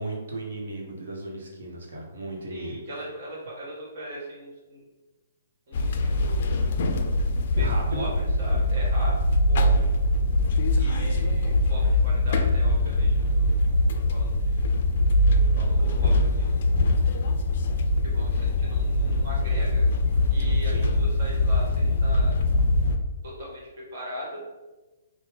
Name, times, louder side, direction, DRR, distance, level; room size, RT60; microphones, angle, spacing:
voice 1, 0.0-2.8 7.6-8.1 20.6-20.9, right 2 dB, 80° right, -1 dB, 0.9 m, -35 dB
voice 2, 2.5-4.8 5.7-6.6 7.5-9.9 10.8-13.6 13.9-14.7 15.4-16.7 18.0-19.9 20.3-22.3 23.2-24.4, equal, 55° right, -3 dB, 1.3 m, -39 dB
sound 1, 5.7-23.0, left 1 dB, 55° left, 0.3 m, -22 dB
3.3 x 2.1 x 3.4 m, 1.1 s
hypercardioid pair, 140°, 0 cm